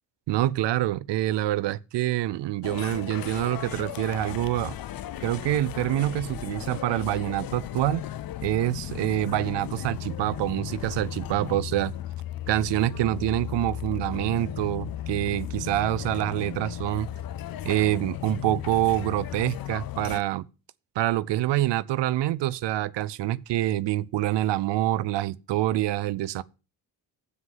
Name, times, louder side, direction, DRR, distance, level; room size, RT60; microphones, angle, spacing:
voice 1, 0.3-4.8 5.2-8.0 8.4-11.9 12.5-17.1 17.6-20.5 21.0-26.4, right 14 dB, 80° right, 0.6 m, -26 dB
sound 1, 2.6-20.2, left 12 dB, 55° left, 0.6 m, -36 dB
7.5 x 6.4 x 7.3 m
cardioid pair, 115°, 41 cm